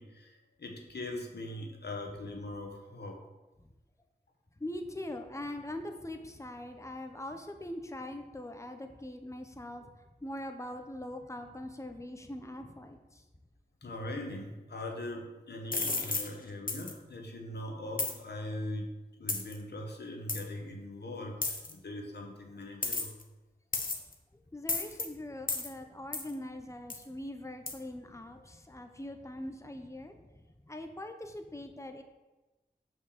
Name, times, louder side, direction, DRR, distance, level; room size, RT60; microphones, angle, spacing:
voice 1, 0.0-3.2 13.8-18.9 19.2-23.1, left 1 dB, 90° left, 2 dB, 1.1 m, -41 dB
voice 2, 4.6-9.9 10.2-13.2 24.5-30.3 30.7-32.0, left 1 dB, 15° left, 6 dB, 0.9 m, -42 dB
sound 1, 15.7-16.3 16.7-16.9 18.0-18.2 19.3-19.5 20.3-20.4 21.4-21.7 22.8-23.2 23.7-24.1 24.7-25.1 25.5-25.7 26.1-26.3 26.9-27.0 27.7-27.8, left 3 dB, 55° left, 1.0 m, -32 dB
6.0 x 4.7 x 6.6 m, 1.1 s
cardioid pair, 45°, 17 cm